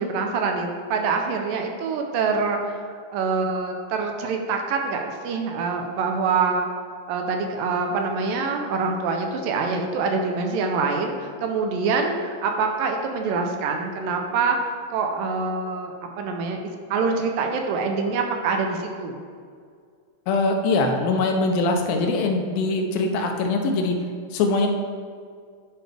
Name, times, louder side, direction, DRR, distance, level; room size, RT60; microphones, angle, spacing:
voice 1, 0.0-6.7 7.1-19.2, right 4 dB, 80° right, 3 dB, 2.2 m, -25 dB
voice 2, 20.3-24.0 24.3-24.7, left 3 dB, 80° left, 3 dB, 2.4 m, -22 dB
10.5 x 4.7 x 3.4 m, 2.1 s
omnidirectional pair, 4.2 m